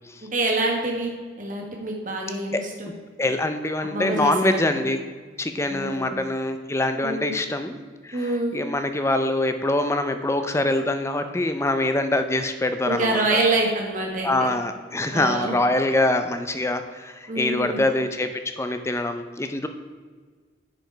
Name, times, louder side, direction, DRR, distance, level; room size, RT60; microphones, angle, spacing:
voice 1, 0.2-1.1 1.4-2.9 3.8-4.8 5.7-6.1 7.0-7.3 8.1-8.6 12.9-14.3 15.1-15.5 17.3-17.9, right 2 dB, 40° right, 0 dB, 1.7 m, -26 dB
voice 2, 3.2-5.0 5.4-7.8 8.0-13.4 14.2-18.3 18.6-19.7, left 2 dB, 15° left, 8 dB, 0.5 m, -24 dB
10.5 x 5.1 x 4.6 m, 1.5 s
head